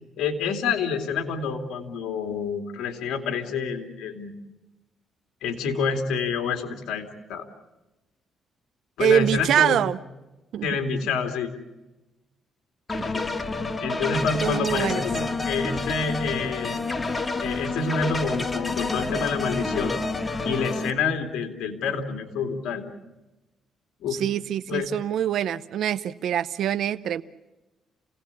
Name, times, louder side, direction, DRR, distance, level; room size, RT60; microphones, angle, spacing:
voice 1, 0.2-4.3 5.4-7.5 9.0-9.8 10.6-11.5 13.1-13.4 13.8-16.8 17.4-20.0 20.4-22.8 24.0-24.2 24.7-24.9, left 5 dB, 80° left, 5 dB, 2.8 m, -28 dB
voice 2, 9.0-10.0 10.5-10.7 13.0-13.1 14.4-15.0 24.1-27.2, right 10 dB, 75° right, 12 dB, 0.7 m, -24 dB
sound 1, 12.9-20.9, left 3 dB, 25° left, 1.7 m, -29 dB
28.0 x 18.0 x 8.4 m, 1.1 s
cardioid pair, 90°, 0 cm